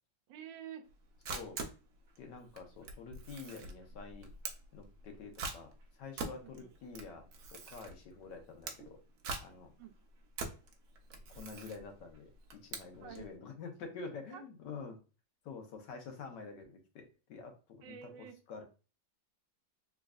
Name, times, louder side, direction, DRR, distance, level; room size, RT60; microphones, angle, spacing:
voice 1, 0.3-0.9 6.4-6.7 9.8-9.9 13.0-13.3 14.3-14.4 17.8-18.4, right 9 dB, 85° right, 7 dB, 1.3 m, -49 dB
Camera, 0.9-13.3, right 4 dB, 60° right, 0.9 m, -45 dB
voice 2, 2.2-4.3 4.7-5.7 6.0-9.0 9.4-9.7 11.3-12.3 12.6-15.0 15.4-18.0 18.5-18.6, left 4 dB, 75° left, 4 dB, 1.5 m, -47 dB
3.6 x 3.1 x 2.3 m, 0.33 s
omnidirectional pair, 2.0 m